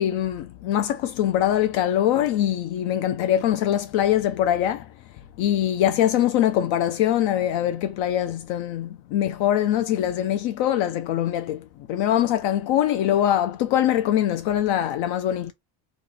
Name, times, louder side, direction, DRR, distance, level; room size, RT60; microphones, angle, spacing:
voice 1, 0.0-4.9 5.4-15.5, left 11 dB, 75° left, 0.6 m, -23 dB
3.0 x 2.4 x 3.8 m
cardioid pair, 170°, 47 cm